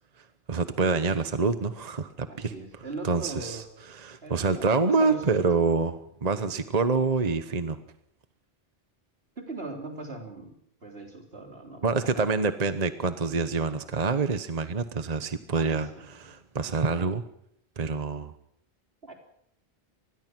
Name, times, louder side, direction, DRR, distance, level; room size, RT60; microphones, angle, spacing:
voice 1, 0.5-2.5 3.0-7.8 11.8-17.2 17.8-18.3, right 4 dB, 40° right, 10 dB, 1.1 m, -27 dB
voice 2, 2.3-3.6 4.2-5.4 9.4-12.3 15.5-16.3 19.0-19.1, right 2 dB, 75° right, 2 dB, 4.0 m, -40 dB
25.5 x 20.5 x 6.1 m, 0.73 s
omnidirectional pair, 1.0 m